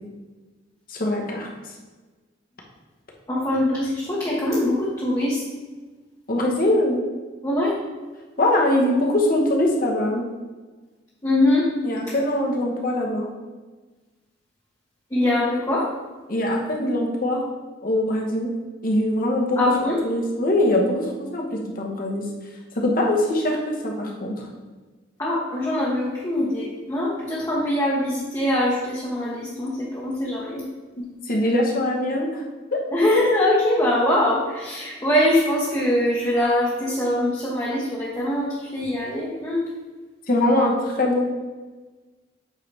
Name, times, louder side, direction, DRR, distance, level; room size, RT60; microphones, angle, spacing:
voice 1, 0.9-1.5 6.3-7.0 8.4-10.3 11.8-13.3 16.3-17.4 17.8-18.5 18.8-19.6 20.0-22.3 22.7-24.3 31.0-32.4 32.7-32.8 40.3-41.3, left 1 dB, 50° left, 0 dB, 1.1 m, -22 dB
voice 2, 3.3-5.4 7.4-7.7 11.2-11.7 15.1-15.9 19.6-20.0 25.2-30.6 32.9-39.6, left 1 dB, 20° left, -6 dB, 1.0 m, -22 dB
8.2 x 3.9 x 3.4 m, 1.3 s
head